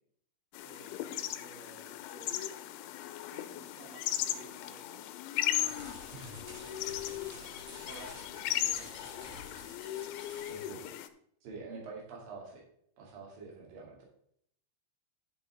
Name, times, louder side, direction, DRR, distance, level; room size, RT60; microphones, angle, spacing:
sound 1, 0.5-11.1, left 13 dB, 85° left, 3.0 m, -37 dB
voice 1, 0.6-2.4 3.3-5.0 5.6-7.0 7.8-9.5 9.9-10.4 11.7-11.8, right 2 dB, 75° right, -1 dB, 3.8 m, -55 dB
sound 2, 5.5-10.7, equal, 30° right, 3.8 m, -51 dB
voice 2, 10.5-10.9 11.4-12.6 13.0-14.1, right 4 dB, 55° right, -2 dB, 4.0 m, -46 dB
11.0 x 7.4 x 3.6 m, 0.68 s
omnidirectional pair, 5.3 m